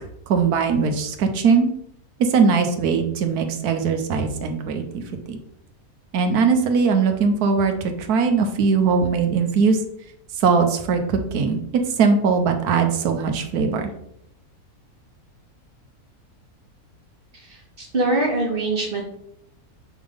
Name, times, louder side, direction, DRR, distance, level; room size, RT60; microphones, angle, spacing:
voice 1, 0.3-1.7 2.3-5.4 6.1-7.7 8.1-9.8 10.4-11.0 11.3-13.9, right 5 dB, 85° right, 6 dB, 1.3 m, -20 dB
voice 2, 17.3-19.0, right 2 dB, 40° right, 0 dB, 1.6 m, -24 dB
6.0 x 3.8 x 5.1 m, 0.75 s
omnidirectional pair, 1.6 m